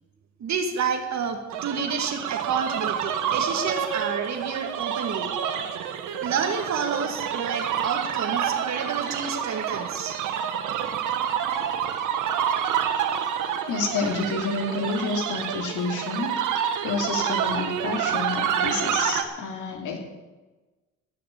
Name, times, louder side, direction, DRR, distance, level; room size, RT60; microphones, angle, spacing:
voice 1, 0.4-5.3 6.2-10.2, right 6 dB, 65° right, 5 dB, 2.3 m, -29 dB
sound 1, 1.5-19.2, right 8 dB, 85° right, 1.4 m, -28 dB
voice 2, 13.7-16.4 16.8-20.0, left 3 dB, 80° left, 2 dB, 3.0 m, -29 dB
17.0 x 6.8 x 8.5 m, 1.2 s
cardioid pair, 90°, 30 cm